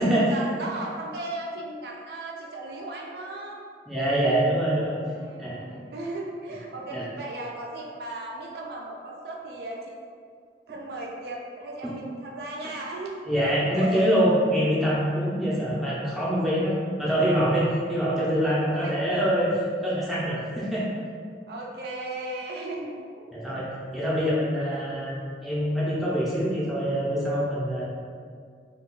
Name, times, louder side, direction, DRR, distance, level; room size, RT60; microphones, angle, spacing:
voice 1, 0.3-3.6 5.1-10.0 10.7-13.2 13.7-14.2 15.3-15.4 18.7-19.0 21.5-23.3 24.7-24.8, right 2 dB, 60° right, -2 dB, 0.4 m, -36 dB
voice 2, 3.9-5.0 5.4-5.6 6.9-7.0 11.8-11.9 13.3-19.5 19.8-20.8 23.3-25.2 25.4-27.8, equal, ahead, -8 dB, 0.5 m, -25 dB
2.3 x 2.2 x 3.7 m, 2.1 s
head